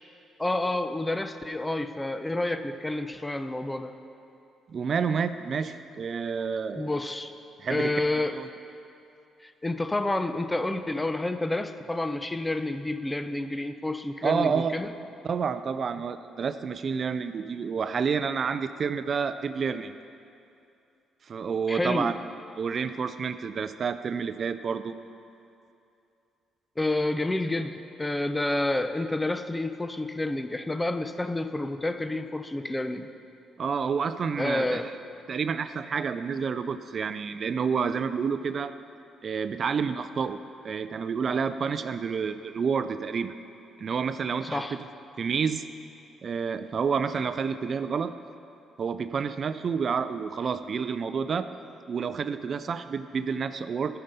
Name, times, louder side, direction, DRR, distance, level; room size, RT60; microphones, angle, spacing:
voice 1, 0.4-3.9 6.8-7.3 7.7-8.4 9.4-14.9 21.7-22.1 26.8-33.1 34.4-34.9 44.4-44.7, left 2 dB, 15° left, 9 dB, 0.6 m, -29 dB
voice 2, 4.7-6.9 7.6-8.5 14.2-14.7 15.2-19.9 21.2-22.2 22.5-24.9 33.6-34.9 35.3-38.8 39.2-40.4 40.6-43.3 43.8-44.8 45.2-45.6 46.2-48.1 48.8-51.5 51.9-54.0, right 6 dB, 50° right, 11 dB, 0.4 m, -29 dB
12.5 x 6.7 x 5.5 m, 2.6 s
cardioid pair, 90°, 0 cm